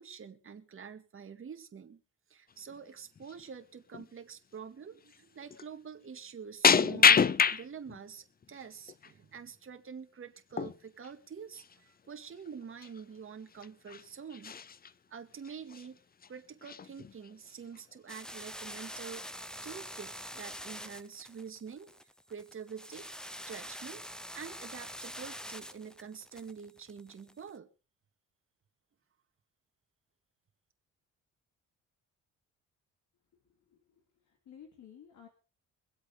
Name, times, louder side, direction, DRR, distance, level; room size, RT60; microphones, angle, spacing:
voice 1, 0.0-2.0 2.3-14.5 15.1-16.0 16.3-21.9 22.3-23.1 23.5-24.0 24.3-27.7, right 6 dB, 45° right, 6 dB, 2.2 m, -46 dB
sound 1, 2.5-2.8 3.2-3.4 3.9-4.1 5.1-5.2 5.5-5.7 6.6-8.0 8.4-9.1 10.5-10.8 11.0-11.1 11.5-11.8 12.5-12.6 12.8-13.0 13.5-14.0 14.3-14.9 15.4-15.9 16.2-16.3 16.6-17.3 17.8-18.2, left 6 dB, 30° left, 0.7 m, -27 dB
sound 2, 18.1-27.5, equal, ahead, 1.0 m, -45 dB
voice 2, 33.7-35.3, left 8 dB, 70° left, 4 dB, 3.0 m, -54 dB
24.0 x 8.1 x 5.1 m, 0.35 s
cardioid pair, 90°, 30 cm